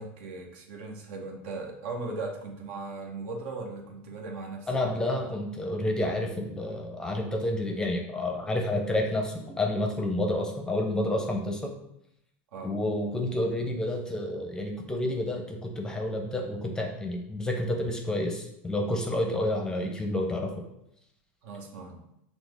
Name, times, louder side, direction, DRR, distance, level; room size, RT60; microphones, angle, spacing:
voice 1, 0.0-4.7 5.1-5.3 12.5-12.8 19.2-19.4 21.4-22.0, right 3 dB, 65° right, 1 dB, 0.9 m, -38 dB
voice 2, 4.7-11.7 12.6-20.5, left 1 dB, 10° left, 2 dB, 0.6 m, -29 dB
5.9 x 2.0 x 3.4 m, 0.79 s
supercardioid pair, 115°, 7 cm